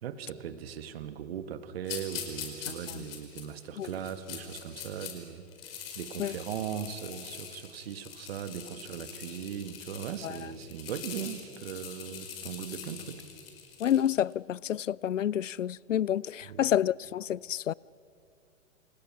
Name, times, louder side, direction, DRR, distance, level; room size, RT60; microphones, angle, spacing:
voice 1, 0.0-5.4 6.0-13.2 16.4-16.7, right 8 dB, 50° right, 1.9 m, -39 dB
sound 1, 1.8-5.1 5.5-14.2, left 8 dB, 45° left, 5.2 m, -43 dB
voice 2, 13.8-17.7, left 10 dB, 70° left, 0.5 m, -29 dB
28.5 x 28.5 x 6.1 m
figure-of-eight pair, 110°, 39 cm